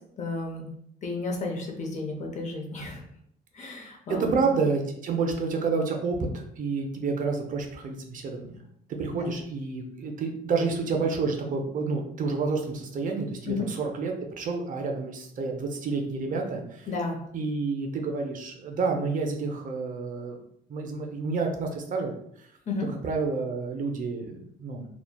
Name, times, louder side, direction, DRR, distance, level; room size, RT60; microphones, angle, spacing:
voice 1, 0.2-0.7 1.0-3.0 3.5-4.4 9.1-9.3 13.5-13.7 16.9-17.2 22.7-22.9, left 3 dB, 40° left, 1 dB, 0.6 m, -32 dB
voice 2, 4.1-8.6 8.9-16.9 17.3-20.4 20.7-22.5 22.9-24.9, right 4 dB, 45° right, 2 dB, 0.5 m, -29 dB
3.0 x 2.2 x 2.2 m, 0.71 s
cardioid pair, 115°, 18 cm